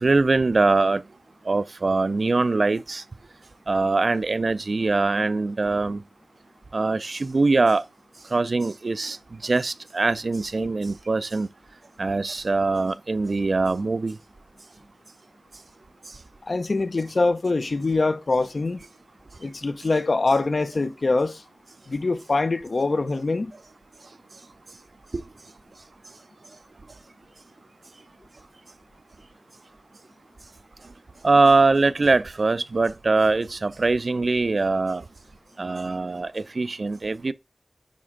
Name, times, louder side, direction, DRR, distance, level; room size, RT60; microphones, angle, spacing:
voice 1, 0.0-1.0 1.5-3.0 3.7-6.0 6.7-7.8 8.3-9.2 9.4-11.5 12.0-14.2 31.2-35.0 35.6-37.3, right 3 dB, 75° right, 0.4 m, -22 dB
voice 2, 16.4-18.8 19.4-21.4 21.9-23.5, left 3 dB, 75° left, 0.7 m, -24 dB
9.6 x 4.2 x 3.8 m
wide cardioid pair, 50°, 0 cm